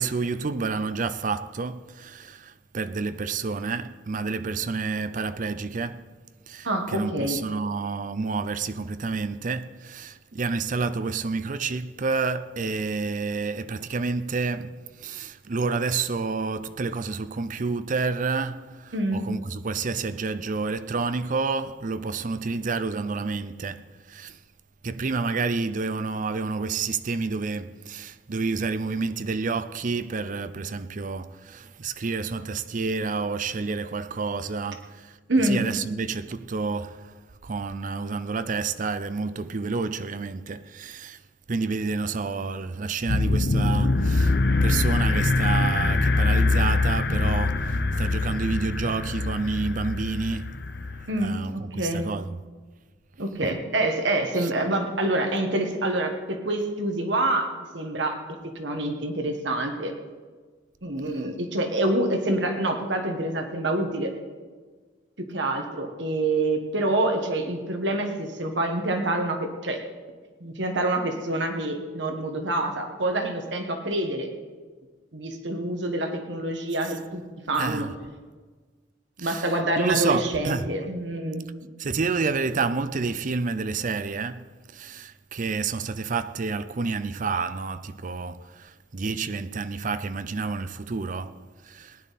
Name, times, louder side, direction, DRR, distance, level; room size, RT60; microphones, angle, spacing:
voice 1, 0.0-6.1 6.5-24.4 24.8-37.1 37.4-41.2 41.5-50.6 51.2-52.4 54.4-54.5 77.6-77.9 79.2-79.5 79.8-80.7 81.8-92.0, right 4 dB, 45° right, 0.5 m, -29 dB
voice 2, 6.6-7.4 18.9-19.2 35.3-35.6 51.1-52.1 53.2-58.2 58.5-59.9 60.8-64.1 65.2-69.8 70.4-74.3 75.1-77.2 77.5-77.9 79.2-81.5, right 1 dB, 65° right, 1.5 m, -26 dB
sound 1, 43.1-51.2, left 3 dB, 60° left, 0.8 m, -23 dB
18.5 x 10.5 x 4.2 m
head